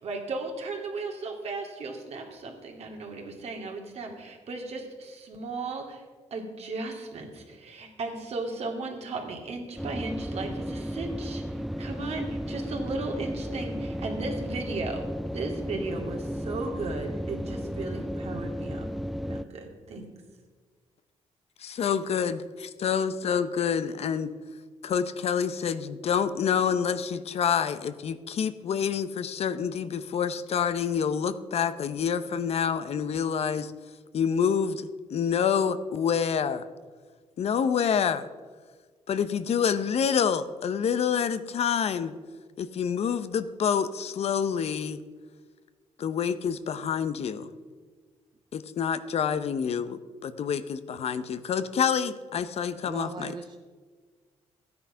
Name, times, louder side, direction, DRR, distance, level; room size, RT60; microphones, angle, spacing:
voice 1, 0.0-6.0 6.3-15.1 15.3-18.9 19.2-20.1, right 3 dB, 60° right, 2 dB, 2.5 m, -36 dB
sound 1, 9.8-19.4, equal, ahead, 0.4 m, -34 dB
voice 2, 21.6-24.3 24.8-33.7 34.1-36.7 37.4-38.3 39.1-42.1 42.6-45.0 46.0-47.5 48.5-53.4, left 7 dB, 60° left, 12 dB, 0.7 m, -27 dB
voice 3, 52.9-53.5, right 5 dB, 40° right, 5 dB, 0.7 m, -38 dB
13.5 x 9.6 x 5.7 m, 1.5 s
cardioid pair, 100°, 12 cm